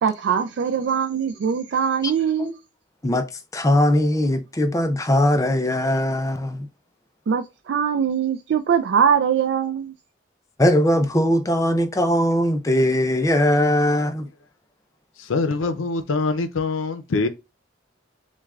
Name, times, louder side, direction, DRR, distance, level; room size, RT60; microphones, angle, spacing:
voice 1, 0.0-2.5 7.3-9.9, right 7 dB, 60° right, 0.3 m, -22 dB
voice 2, 3.5-6.7 10.6-14.3, left 1 dB, 15° left, 0.4 m, -20 dB
voice 3, 15.2-17.3, left 3 dB, 90° left, 0.6 m, -24 dB
6.1 x 2.2 x 2.4 m
head